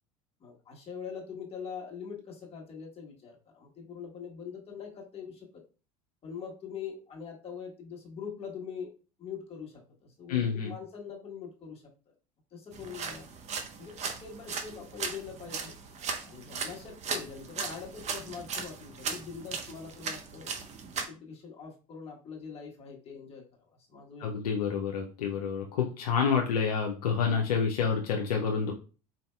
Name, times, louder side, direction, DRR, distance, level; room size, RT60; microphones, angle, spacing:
voice 1, 0.4-5.5 6.2-8.9 9.2-12.1 12.5-13.2 13.8-15.7 16.2-20.5 20.9-24.3, left 6 dB, 30° left, -1 dB, 1.3 m, -43 dB
voice 2, 10.3-10.7 24.2-28.7, left 6 dB, 85° left, 1 dB, 0.5 m, -28 dB
sound 1, 12.7-21.1, right 5 dB, 35° right, 0.6 m, -38 dB
4.1 x 2.6 x 2.2 m, 0.35 s
hypercardioid pair, 85°, 19 cm